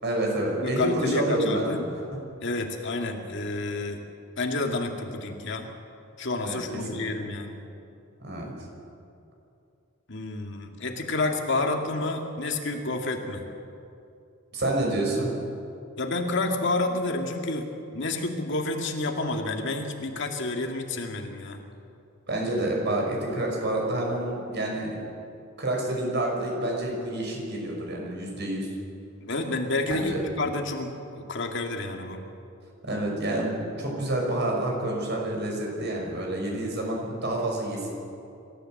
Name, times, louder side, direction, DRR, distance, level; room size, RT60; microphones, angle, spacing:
voice 1, 0.0-1.7 6.4-7.1 8.2-8.5 14.5-15.4 22.3-25.0 25.6-28.7 29.9-30.2 32.8-37.9, right 1 dB, 55° right, 0 dB, 5.6 m, -28 dB
voice 2, 0.6-1.9 2.4-4.0 4.4-5.7 6.2-7.6 10.1-13.5 16.0-21.6 29.2-32.2, left 2 dB, 60° left, 3 dB, 2.1 m, -29 dB
26.0 x 13.5 x 7.7 m, 2.7 s
head